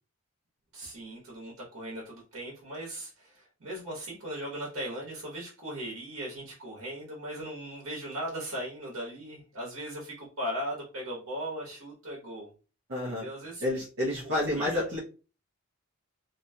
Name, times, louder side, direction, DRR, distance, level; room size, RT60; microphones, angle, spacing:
voice 1, 0.7-12.5 13.0-13.6 14.2-14.8, equal, 70° right, -4 dB, 1.1 m, -38 dB
voice 2, 12.9-13.3 13.6-15.0, left 1 dB, 55° right, -4 dB, 0.7 m, -29 dB
2.8 x 2.3 x 2.7 m, 0.36 s
head